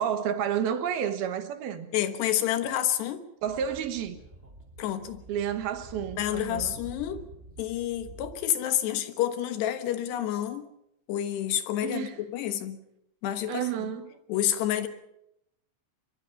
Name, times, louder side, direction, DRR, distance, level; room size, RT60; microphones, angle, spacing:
voice 1, 0.0-1.9 3.4-4.2 5.3-6.7 11.8-12.2 13.5-14.2, right 8 dB, 65° right, 3.0 m, -30 dB
voice 2, 1.9-3.2 4.8-5.2 6.2-7.2 7.6-10.7 11.1-12.8 13.2-13.7 14.3-14.9, left 11 dB, 70° left, 3.3 m, -29 dB
Speech / Wind, 3.4-8.3, right 2 dB, 15° right, 3.6 m, -47 dB
23.5 x 23.5 x 5.6 m
omnidirectional pair, 5.3 m